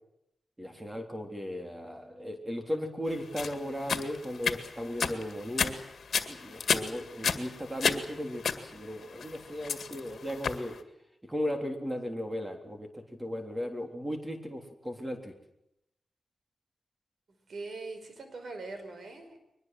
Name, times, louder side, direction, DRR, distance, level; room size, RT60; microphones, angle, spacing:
voice 1, 0.6-5.8 6.3-10.7 11.3-15.3, equal, 15° right, 4 dB, 3.5 m, -36 dB
sound 1, 3.4-10.7, left 6 dB, 70° left, 2.0 m, -32 dB
voice 2, 17.5-19.4, right 3 dB, 65° right, 7 dB, 5.3 m, -41 dB
23.0 x 20.0 x 7.8 m, 0.81 s
cardioid pair, 85°, 0 cm